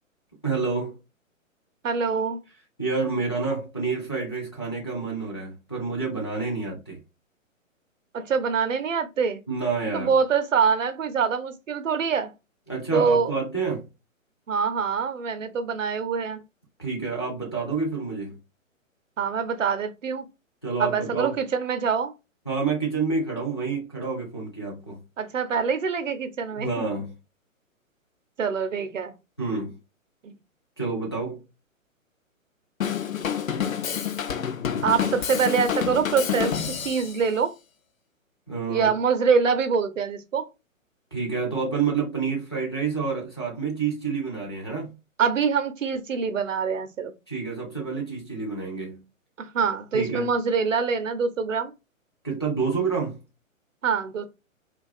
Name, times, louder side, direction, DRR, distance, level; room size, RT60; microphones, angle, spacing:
voice 1, 0.4-1.0 2.8-7.0 9.5-10.1 12.7-13.9 16.8-18.4 20.6-21.4 22.5-25.0 26.6-27.1 29.4-29.8 30.8-31.4 38.5-38.9 41.1-45.0 47.3-49.0 49.9-50.3 52.2-53.2, right 4 dB, 20° left, 0.3 m, -28 dB
voice 2, 1.8-2.4 8.1-9.4 9.9-12.3 12.9-13.3 14.5-16.4 19.2-20.3 20.8-22.1 25.2-26.9 28.4-29.1 30.2-30.3 34.8-36.6 36.8-37.5 38.7-40.5 45.2-47.1 49.4-51.7 53.8-54.2, right 6 dB, 70° right, 0.6 m, -25 dB
Drum kit / Drum, 32.8-37.2, left 8 dB, 75° left, 0.5 m, -28 dB
2.5 x 2.3 x 2.4 m
figure-of-eight pair, 125°, 41 cm